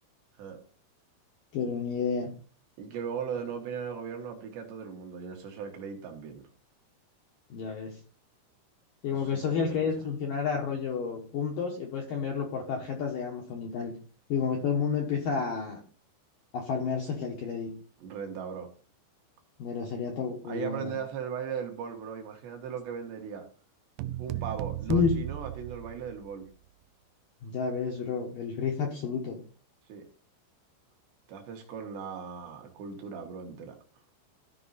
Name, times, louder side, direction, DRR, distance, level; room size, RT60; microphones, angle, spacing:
voice 1, 1.5-2.3 7.5-8.0 9.0-13.9 14.3-15.8 16.5-17.7 19.6-21.0 24.9-25.1 27.4-29.4, left 6 dB, 70° left, 1 dB, 2.2 m, -30 dB
voice 2, 2.8-6.4 9.1-9.9 18.0-18.7 20.5-23.5 24.2-26.5 29.9-30.0 31.3-33.8, right 7 dB, 65° right, 3 dB, 3.3 m, -38 dB
sound 1, 24.0-26.5, right 14 dB, 85° right, 2.9 m, -35 dB
14.0 x 5.4 x 4.1 m, 0.40 s
omnidirectional pair, 5.7 m